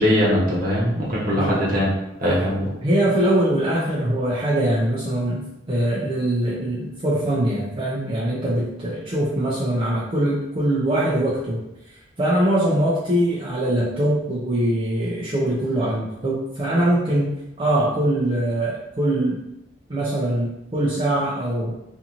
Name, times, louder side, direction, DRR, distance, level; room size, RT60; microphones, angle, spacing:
voice 1, 0.0-1.9 2.2-2.7, equal, 50° right, -6 dB, 0.9 m, -20 dB
voice 2, 2.8-11.6 12.2-17.3 17.6-19.4 19.9-21.8, right 1 dB, 30° right, -7 dB, 0.4 m, -22 dB
2.6 x 2.5 x 2.8 m, 0.89 s
head